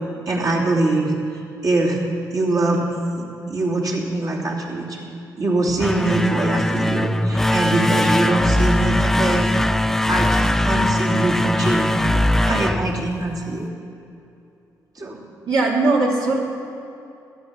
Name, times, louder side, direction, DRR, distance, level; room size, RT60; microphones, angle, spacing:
voice 1, 0.3-1.1 1.6-2.0 2.3-5.1 5.4-9.5 10.1-13.7 14.9-15.2, right 2 dB, 60° right, -3 dB, 3.0 m, -23 dB
sound 1, 5.7-13.6, left 1 dB, 5° left, 0.3 m, -21 dB
voice 2, 15.5-16.4, right 3 dB, 80° right, -3 dB, 2.7 m, -19 dB
14.0 x 9.5 x 7.5 m, 2.7 s
cardioid pair, 80°, 7 cm